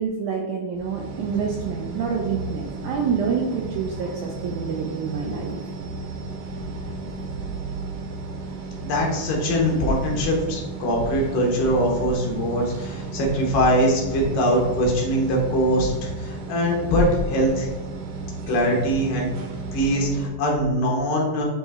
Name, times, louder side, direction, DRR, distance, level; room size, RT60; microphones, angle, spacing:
voice 1, 0.0-5.5, right 6 dB, 85° right, 0 dB, 1.8 m, -27 dB
sound 1, 0.7-20.3, right 3 dB, 70° right, 2.2 m, -34 dB
voice 2, 8.8-17.7 18.5-19.3 19.7-21.4, equal, 75° left, -1 dB, 2.8 m, -22 dB
9.0 x 3.1 x 3.4 m, 1.2 s
omnidirectional pair, 4.1 m